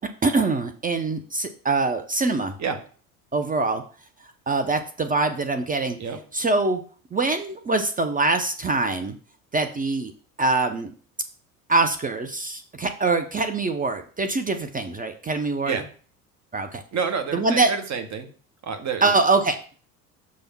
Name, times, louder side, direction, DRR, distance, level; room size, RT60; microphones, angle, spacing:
voice 1, 0.2-2.5 3.3-3.8 4.5-6.0 6.3-6.8 7.1-9.1 9.5-10.1 10.4-10.9 11.7-15.7 16.5-16.8 17.3-17.7 19.0-19.6, right 3 dB, 20° right, 7 dB, 0.6 m, -23 dB
voice 2, 16.9-18.3 18.6-19.1, right 6 dB, 35° right, 7 dB, 1.3 m, -28 dB
6.4 x 3.5 x 5.8 m, 0.41 s
hypercardioid pair, 75°, 46 cm